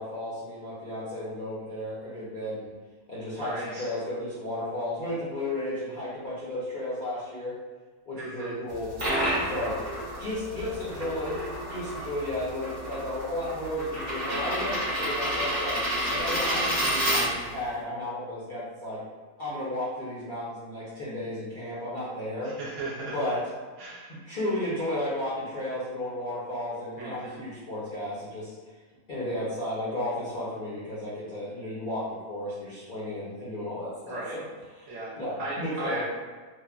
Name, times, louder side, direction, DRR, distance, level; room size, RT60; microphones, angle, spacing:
voice 1, 0.0-2.7 3.1-7.5 8.1-8.9 9.4-9.8 10.2-15.8 16.1-19.0 19.4-22.6 23.1-23.5 24.1-28.5 29.1-34.4 34.8-36.0, left 1 dB, 50° left, -10 dB, 0.6 m, -33 dB
voice 2, 3.4-3.9 8.1-8.6 22.4-23.3 23.8-24.2 27.0-27.4 34.1-34.4 34.9-36.0, right 2 dB, 65° right, -5 dB, 0.9 m, -37 dB
sound 1, 8.7-17.7, equal, 40° right, 0.8 m, -30 dB
3.0 x 2.0 x 2.3 m, 1.4 s
omnidirectional pair, 1.5 m